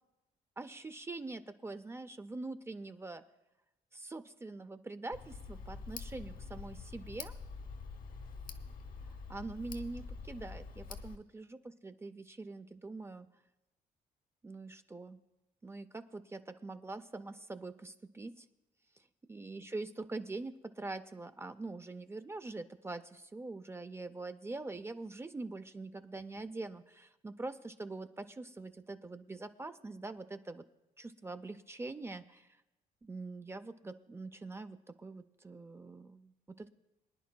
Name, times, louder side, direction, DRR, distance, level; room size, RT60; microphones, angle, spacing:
voice 1, 0.6-3.2 3.9-7.3 9.3-13.3 14.4-15.2 15.6-18.5 19.3-30.6 31.0-32.5 33.0-36.7, right 3 dB, 15° right, 9 dB, 0.4 m, -44 dB
Tick, 5.1-11.2, left 4 dB, 60° left, 0.8 m, -46 dB
24.5 x 10.0 x 2.2 m, 0.99 s
cardioid pair, 120°, 15 cm